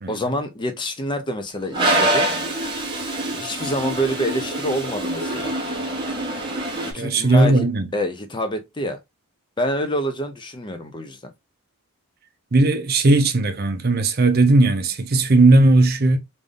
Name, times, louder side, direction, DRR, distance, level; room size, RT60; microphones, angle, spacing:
voice 1, 0.1-2.3 3.3-5.5 6.8-7.7 7.9-9.0 9.6-11.3, equal, 20° left, 0.4 m, -27 dB
Toilet flush, 1.7-6.9, right 1 dB, 20° right, 1.0 m, -25 dB
voice 2, 6.9-7.9 12.5-16.2, right 2 dB, 45° right, 0.6 m, -17 dB
3.5 x 2.6 x 3.4 m
head